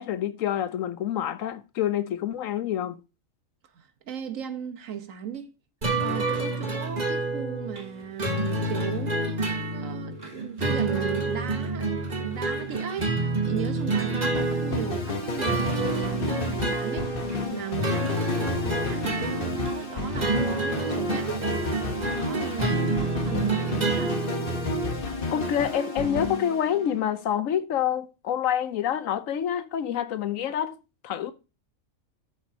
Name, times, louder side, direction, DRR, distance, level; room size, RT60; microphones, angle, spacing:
voice 1, 0.0-3.0 25.3-30.8 31.0-31.3, left 9 dB, 75° left, 1.1 m, -27 dB
voice 2, 3.7-5.5 6.0-11.9 12.2-13.2 13.5-21.4 22.2-24.2, right 8 dB, 75° right, 1.4 m, -36 dB
sound 1, 5.8-25.0, right 2 dB, 30° right, 1.6 m, -28 dB
sound 2, 14.3-27.3, left 2 dB, 45° left, 1.3 m, -32 dB
12.5 x 7.3 x 2.8 m
omnidirectional pair, 1.4 m